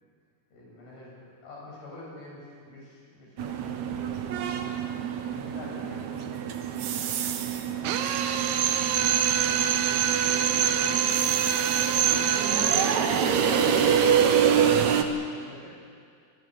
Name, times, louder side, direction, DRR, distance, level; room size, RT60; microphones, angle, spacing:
voice 1, 0.5-7.1 7.7-11.1 11.8-12.3 12.7-15.7, left 2 dB, 85° left, -4 dB, 9.7 m, -46 dB
sound 1, 3.4-15.0, right 8 dB, 65° right, 2.0 m, -27 dB
Drill, 7.8-13.1, right 9 dB, 90° right, 3.1 m, -25 dB
27.0 x 20.0 x 6.6 m, 2.2 s
omnidirectional pair, 4.5 m